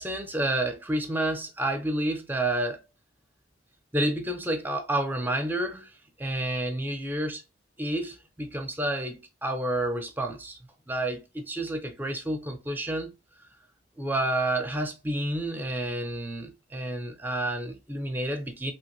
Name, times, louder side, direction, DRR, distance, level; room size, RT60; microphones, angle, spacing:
voice 1, 0.0-2.8 3.9-5.9 6.2-7.4 7.8-10.6 10.9-13.1 14.0-18.7, right 1 dB, 10° right, 0.5 m, -30 dB
2.8 x 2.6 x 2.9 m
head